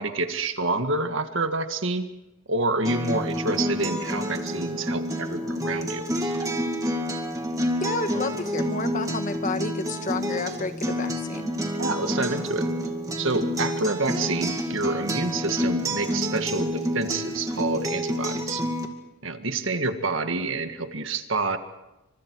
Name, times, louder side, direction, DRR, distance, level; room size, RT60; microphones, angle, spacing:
voice 1, 0.0-2.1 2.5-6.0 11.8-12.7 13.2-18.6 19.2-21.6, right 3 dB, 65° right, 8 dB, 1.7 m, -28 dB
Acoustic guitar, 2.8-18.9, equal, 15° right, 2.2 m, -28 dB
voice 2, 7.8-11.5, left 3 dB, 35° left, 9 dB, 1.3 m, -31 dB
29.0 x 26.0 x 4.7 m, 0.97 s
head